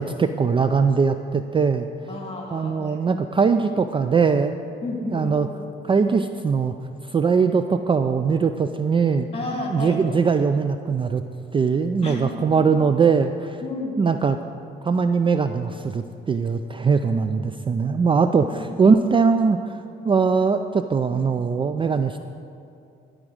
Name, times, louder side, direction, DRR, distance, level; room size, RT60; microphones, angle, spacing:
voice 1, 0.0-1.9 2.5-4.5 5.1-5.5 5.8-6.7 7.0-9.3 9.7-11.2 11.5-13.6 14.0-14.4 14.8-22.2, right 5 dB, 25° right, 8 dB, 0.3 m, -21 dB
voice 2, 2.1-3.0 4.8-5.3 9.3-10.0 12.0-12.7 13.6-14.0 18.4-18.9 21.1-21.2, left 2 dB, 30° left, 0 dB, 2.5 m, -32 dB
13.5 x 5.0 x 6.3 m, 2.6 s
cardioid pair, 90°, 20 cm